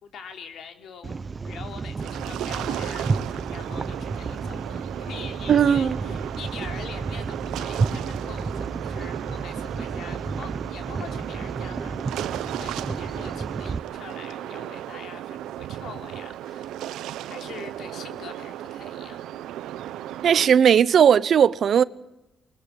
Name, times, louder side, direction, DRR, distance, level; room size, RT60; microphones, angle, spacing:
voice 1, 0.0-19.4, left 6 dB, 70° left, 3.7 m, -43 dB
sound 1, 1.0-13.8, right 4 dB, 35° right, 1.0 m, -32 dB
sound 2, 2.0-20.5, right 12 dB, 85° right, 1.1 m, -35 dB
voice 2, 5.5-6.0 20.2-21.8, right 8 dB, 60° right, 0.9 m, -17 dB
23.0 x 20.5 x 9.5 m
cardioid pair, 90°, 0 cm